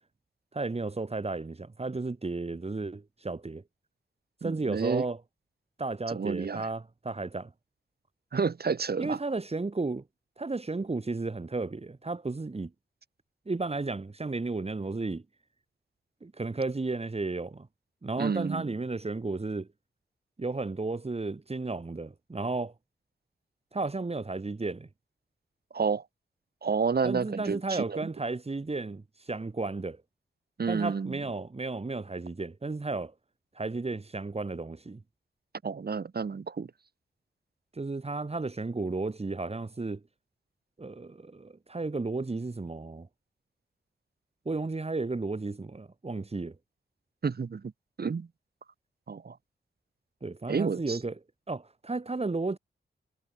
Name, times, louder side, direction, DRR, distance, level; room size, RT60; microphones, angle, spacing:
voice 1, 0.5-3.6 4.4-5.2 5.8-7.5 9.0-10.0 10.4-12.7 13.5-15.2 16.2-17.7 18.0-19.7 20.4-22.7 23.7-24.9 27.0-30.0 30.7-33.1 33.5-35.0 37.7-40.0 40.8-43.1 44.4-46.5 50.2-51.1 51.5-52.6, right 3 dB, 35° right, 2.9 m, -33 dB
voice 2, 4.4-5.0 6.1-6.7 8.3-9.2 18.2-18.7 25.7-26.0 26.6-28.0 30.6-31.2 35.6-36.7 47.2-47.7 48.0-48.3 49.1-49.4 50.5-51.0, right 5 dB, 55° right, 2.3 m, -30 dB
wide cardioid pair, 80°, 19 cm